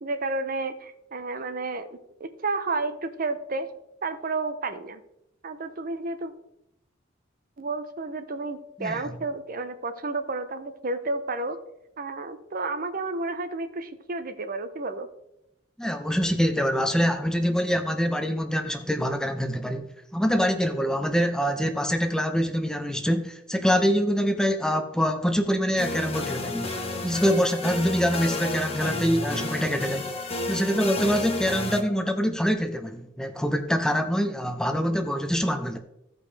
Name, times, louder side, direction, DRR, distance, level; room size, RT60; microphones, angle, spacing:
voice 1, 0.0-1.9 2.2-3.7 4.0-5.0 5.4-6.3 7.6-11.6 12.0-15.1, right 3 dB, 45° right, 9 dB, 0.6 m, -31 dB
voice 2, 15.8-26.7 27.0-30.1 30.5-35.8, equal, 5° left, 6 dB, 0.7 m, -25 dB
sound 1, 25.8-31.8, left 2 dB, 30° left, 1.1 m, -31 dB
15.5 x 5.2 x 3.3 m, 0.83 s
head